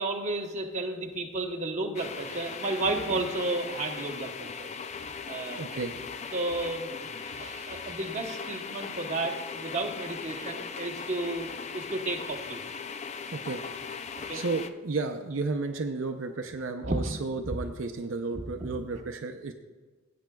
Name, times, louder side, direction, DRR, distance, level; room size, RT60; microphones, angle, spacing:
voice 1, 0.0-4.7 5.3-5.8 6.3-12.6 14.3-14.4 16.8-17.1, right 2 dB, 35° right, 2 dB, 0.9 m, -32 dB
sound 1, 1.9-14.7, left 5 dB, 30° left, 0.3 m, -39 dB
voice 2, 5.6-5.9 13.3-13.6 14.1-19.5, right 3 dB, 65° right, 4 dB, 0.6 m, -33 dB
16.5 x 8.5 x 2.3 m, 1.3 s
head